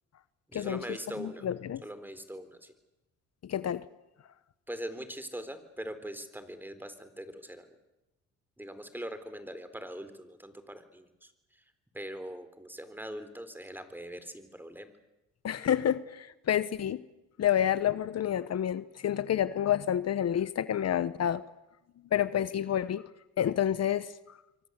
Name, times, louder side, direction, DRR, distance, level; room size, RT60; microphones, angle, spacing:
voice 1, 0.5-1.4 1.8-2.7 4.7-7.7 8.6-11.3 11.9-14.9, right 1 dB, 5° right, 11 dB, 3.9 m, -42 dB
voice 2, 1.2-1.8 3.5-3.8 15.4-17.0 17.4-21.4 22.1-23.0 23.4-24.1, left 10 dB, 55° left, 15 dB, 1.1 m, -29 dB
28.0 x 24.0 x 8.3 m, 0.97 s
cardioid pair, 90°, 30 cm